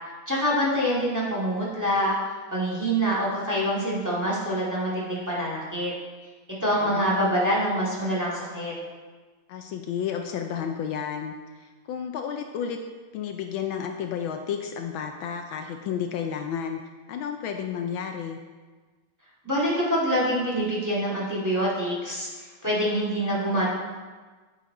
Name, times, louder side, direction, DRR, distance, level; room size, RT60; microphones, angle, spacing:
voice 1, 0.3-2.2 2.5-5.9 6.6-8.7 19.4-23.7, equal, 10° right, -6 dB, 1.8 m, -25 dB
voice 2, 6.8-7.3 9.5-11.4 11.9-12.8 13.1-16.8 17.1-18.4, left 8 dB, 75° left, 4 dB, 1.3 m, -31 dB
8.5 x 8.5 x 3.8 m, 1.4 s
omnidirectional pair, 2.3 m